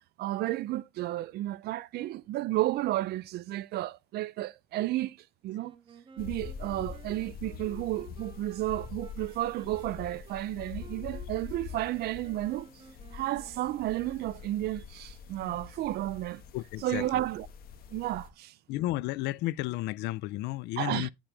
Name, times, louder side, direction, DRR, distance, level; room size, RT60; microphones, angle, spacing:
voice 1, 0.2-5.2 5.4-5.7 6.2-12.7 13.1-16.4 16.8-17.5 17.9-18.6 20.8-21.1, right 15 dB, 75° right, 0.6 m, -32 dB
Wind instrument woodwind instrument, 5.5-14.3, right 3 dB, 30° right, 1.9 m, -55 dB
sound 1, 6.2-18.3, left 6 dB, 60° left, 1.6 m, -45 dB
voice 2, 16.5-17.0 18.7-21.1, left 17 dB, 85° left, 0.5 m, -32 dB
8.9 x 7.2 x 3.3 m
cardioid pair, 110°, 17 cm